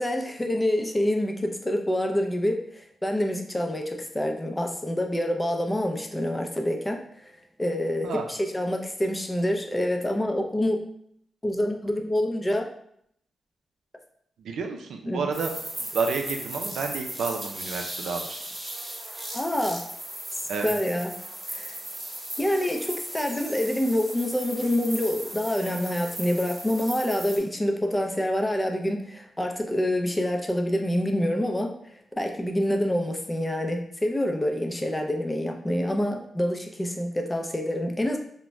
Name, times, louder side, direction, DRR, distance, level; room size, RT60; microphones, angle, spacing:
voice 1, 0.0-7.0 7.6-10.8 11.4-12.7 15.1-15.2 19.3-19.8 20.3-21.1 21.5-21.8 22.4-31.7 32.2-38.2, left 1 dB, 15° left, 3 dB, 0.4 m, -27 dB
voice 2, 14.4-15.5 15.8-18.4 20.5-20.7, right 5 dB, 85° right, 3 dB, 0.4 m, -30 dB
sound 1, 15.3-27.4, right 1 dB, 20° right, 0.7 m, -37 dB
2.5 x 2.1 x 3.1 m, 0.68 s
cardioid pair, 80°, 0 cm